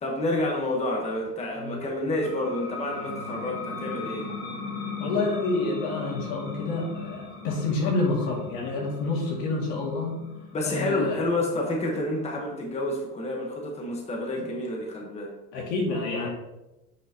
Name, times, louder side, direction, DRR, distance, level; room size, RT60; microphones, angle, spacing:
voice 1, 0.0-4.3 10.5-15.3, left 1 dB, 20° left, 0 dB, 1.2 m, -29 dB
sound 1, 2.1-13.4, left 4 dB, 45° left, 1.1 m, -38 dB
voice 2, 5.0-10.2 10.6-11.2 14.4-14.5 15.5-16.3, left 3 dB, 75° left, -1 dB, 2.3 m, -28 dB
8.3 x 5.6 x 2.9 m, 0.97 s
cardioid pair, 145°, 33 cm